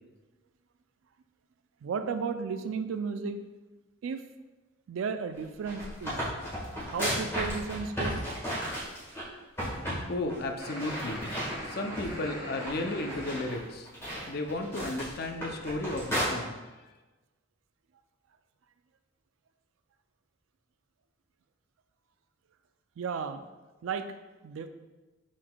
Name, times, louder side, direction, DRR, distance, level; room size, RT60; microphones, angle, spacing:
voice 1, 1.8-3.4 4.0-4.2 4.9-6.3 6.7-8.2 23.0-23.5 23.8-24.1 24.4-24.7, right 5 dB, 85° right, 9 dB, 0.3 m, -34 dB
sound 1, 5.4-9.2 9.6-10.0 10.3-10.4 10.8-12.2 12.6-16.3, equal, 15° left, 1.5 m, -34 dB
voice 2, 10.1-11.3 11.6-13.9 14.3-16.7, left 2 dB, 50° left, 4 dB, 0.5 m, -34 dB
sound 2, 10.6-13.5, equal, 20° right, 1.5 m, -41 dB
6.1 x 3.8 x 2.2 m, 1.2 s
head